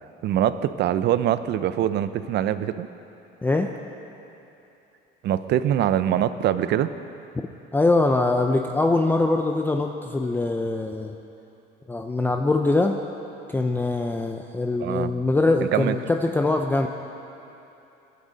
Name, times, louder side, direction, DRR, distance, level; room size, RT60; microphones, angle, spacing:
voice 1, 0.2-2.9 5.2-6.9 14.8-15.1 15.7-15.9, right 11 dB, 55° right, 13 dB, 0.6 m, -23 dB
voice 2, 3.4-3.7 7.7-11.1 11.9-12.9 13.5-16.9, left 2 dB, 10° left, 3 dB, 0.5 m, -23 dB
22.0 x 11.0 x 4.0 m, 3.0 s
cardioid pair, 140°, 21 cm